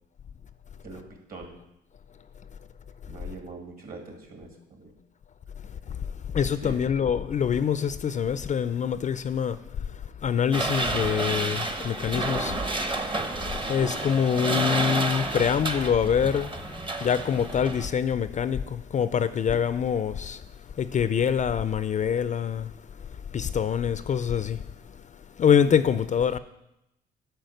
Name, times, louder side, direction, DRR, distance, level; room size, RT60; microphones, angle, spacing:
voice 1, 0.8-1.6 3.1-4.9 6.6-6.8 25.6-25.7, right 3 dB, 50° right, 2.0 m, -42 dB
voice 2, 6.3-9.6 10.2-12.6 13.7-16.5 17.0-20.4 20.8-22.7 23.3-24.6 25.4-26.4, left 8 dB, 40° left, 0.4 m, -25 dB
sound 1, 10.5-17.9, right 2 dB, 25° right, 0.8 m, -30 dB
9.1 x 4.5 x 6.5 m
cardioid pair, 90°, 20 cm